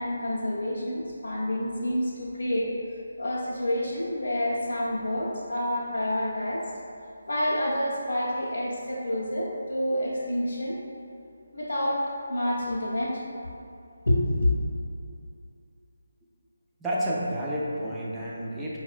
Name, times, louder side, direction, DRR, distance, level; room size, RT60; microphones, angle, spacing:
voice 1, 0.0-2.7 3.2-6.6 7.3-10.8 11.5-12.0 12.3-13.2 14.1-14.5, left 1 dB, 70° left, -8 dB, 0.6 m, -28 dB
voice 2, 16.8-18.8, equal, 5° right, -8 dB, 0.4 m, -30 dB
4.7 x 2.1 x 2.4 m, 2.6 s
figure-of-eight pair, 160°, 0 cm